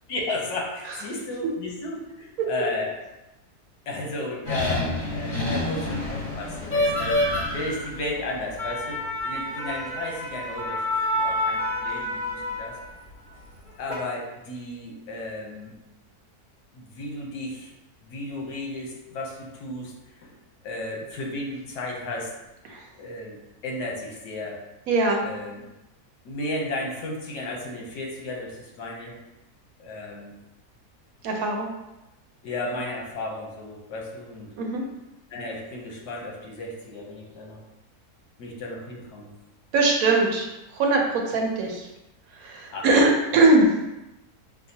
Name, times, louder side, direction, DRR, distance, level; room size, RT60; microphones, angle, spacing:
voice 1, 0.1-2.9 3.9-10.8 11.1-12.8 13.8-15.7 16.7-17.7 18.0-19.9 20.2-20.3 20.6-22.3 23.0-23.4 23.6-24.6 25.2-25.6 26.2-29.2 29.8-30.3 32.4-34.5 35.3-37.6 38.4-39.3 42.7-42.9, left 2 dB, 90° left, -1 dB, 1.4 m, -34 dB
sound 1, 4.4-12.9 13.6-13.9, left 1 dB, 35° left, 1.2 m, -28 dB
voice 2, 24.9-25.3 31.2-31.7 34.6-34.8 39.7-41.9 42.3-43.7, right 2 dB, 70° right, 1 dB, 1.1 m, -21 dB
6.0 x 2.1 x 2.7 m, 0.96 s
omnidirectional pair, 1.6 m